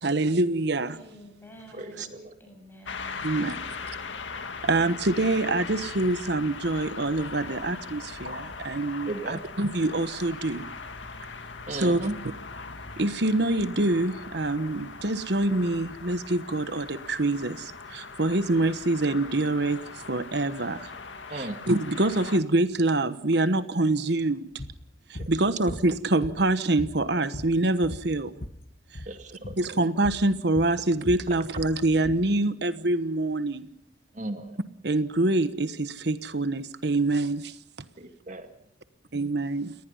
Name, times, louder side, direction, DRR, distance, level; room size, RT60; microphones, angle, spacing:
voice 1, 0.0-1.0 3.2-3.6 4.6-10.6 11.7-12.0 13.0-20.9 21.3-24.5 25.1-28.3 29.6-33.7 34.8-37.5 39.1-39.7, right 2 dB, 60° right, 1.2 m, -25 dB
voice 2, 0.9-3.3, equal, 10° left, 7.5 m, -50 dB
voice 3, 1.8-2.3 9.1-9.4 11.7-12.2 21.3-21.7 25.2-25.3 29.1-29.6 34.1-34.6 38.0-38.5, right 2 dB, 40° right, 2.1 m, -35 dB
sound 1, 2.9-22.4, left 4 dB, 80° left, 2.1 m, -40 dB
sound 2, 24.6-24.8 25.1-25.4 25.7-26.5 26.8-28.6 28.9-29.1 29.4-29.6 30.0-30.3 30.6-32.3, left 1 dB, 50° left, 1.3 m, -38 dB
29.0 x 19.5 x 5.5 m
head